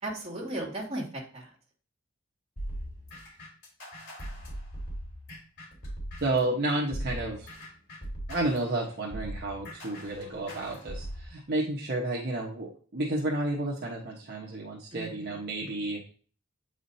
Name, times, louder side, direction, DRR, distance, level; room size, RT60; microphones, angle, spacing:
voice 1, 0.0-1.1 1.3-1.5 14.9-15.9, right 1 dB, 30° right, -2 dB, 2.4 m, -37 dB
sound 1, 2.6-6.5 6.9-11.3, equal, 55° left, 3.5 m, -40 dB
voice 2, 6.2-7.5 8.3-16.0, right 2 dB, 55° right, -3 dB, 1.2 m, -31 dB
8.8 x 5.0 x 2.7 m, 0.41 s
head